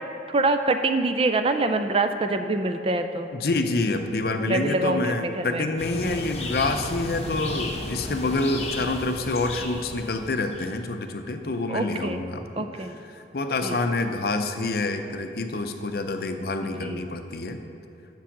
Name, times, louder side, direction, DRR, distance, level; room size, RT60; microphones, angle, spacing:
voice 1, 0.3-3.3 4.5-5.7 6.0-6.3 11.7-12.2 12.6-13.0 13.6-13.8 16.6-17.0, right 2 dB, 30° right, 8 dB, 0.4 m, -25 dB
voice 2, 3.3-12.7 13.1-17.6, left 2 dB, 55° left, 6 dB, 0.6 m, -27 dB
Birdsongs in Montreal's Parc de la Visitation, 5.8-10.7, left 2 dB, 35° left, 1.0 m, -34 dB
7.1 x 6.1 x 7.2 m, 2.8 s
head